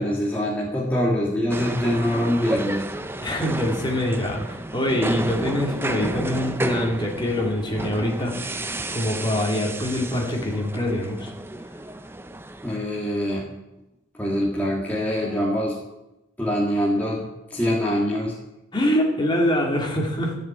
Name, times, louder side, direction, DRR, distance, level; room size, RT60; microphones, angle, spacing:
voice 1, 0.0-2.9 12.6-13.5 14.1-15.8 16.4-18.4, equal, 10° left, -4 dB, 1.9 m, -24 dB
sound 1, 1.5-12.8, right 1 dB, 10° right, 0.6 m, -32 dB
voice 2, 3.2-11.3 18.7-20.4, left 1 dB, 25° left, 0 dB, 2.6 m, -24 dB
14.0 x 7.3 x 8.9 m, 0.94 s
head